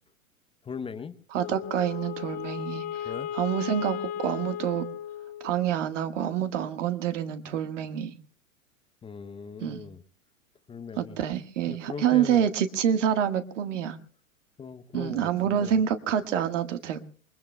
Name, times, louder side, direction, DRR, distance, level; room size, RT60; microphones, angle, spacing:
voice 1, 0.6-1.2 3.0-3.3 9.0-10.0 10.7-11.2 11.7-12.5 14.6-15.8, left 6 dB, 15° left, 11 dB, 0.7 m, -39 dB
voice 2, 1.3-3.1 3.3-4.9 5.4-8.1 9.6-9.8 11.0-14.0 14.9-17.0, right 9 dB, 65° right, 9 dB, 1.6 m, -27 dB
Wind instrument woodwind instrument, 1.4-5.8, left 10 dB, 50° left, 2.0 m, -36 dB
28.5 x 21.5 x 2.2 m, 0.41 s
hypercardioid pair, 95°, 39 cm